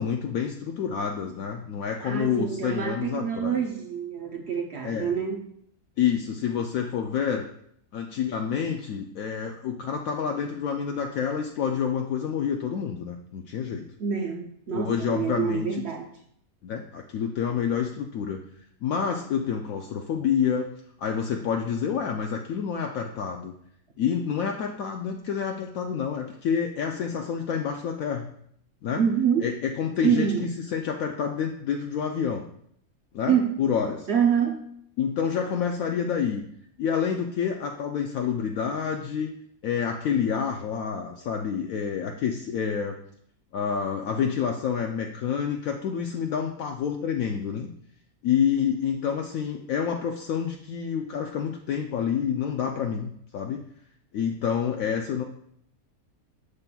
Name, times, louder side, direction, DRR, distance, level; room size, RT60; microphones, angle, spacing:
voice 1, 0.0-3.6 4.8-5.1 6.0-7.5 7.9-13.8 14.7-15.8 16.6-18.4 18.8-20.7 21.0-23.5 24.0-28.3 28.8-29.0 29.4-30.3 30.7-32.5 33.1-34.1 35.0-36.5 36.8-39.3 39.6-43.0 43.5-47.7 48.2-53.6 54.1-55.2, left 7 dB, 70° left, 3 dB, 0.9 m, -28 dB
voice 2, 2.0-5.5 14.0-16.1 29.0-29.4 30.0-30.5 33.3-34.7, right 7 dB, 60° right, 3 dB, 0.7 m, -26 dB
7.0 x 6.6 x 2.3 m, 0.69 s
omnidirectional pair, 1.6 m